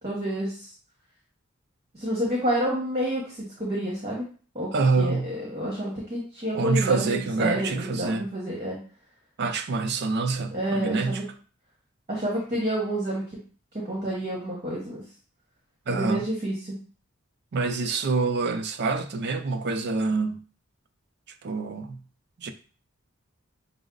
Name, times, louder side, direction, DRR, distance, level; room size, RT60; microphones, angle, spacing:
voice 1, 0.0-0.7 1.9-4.3 4.5-4.7 5.0-8.8 10.5-11.2 12.1-13.2 13.7-15.0 15.9-16.7, right 1 dB, 35° right, 1.2 m, -29 dB
voice 2, 4.7-5.3 6.5-8.3 9.4-11.2 15.9-16.3 17.5-20.4 21.4-22.0 22.4-22.5, right 4 dB, 55° right, 0.5 m, -26 dB
6.0 x 2.0 x 3.8 m
head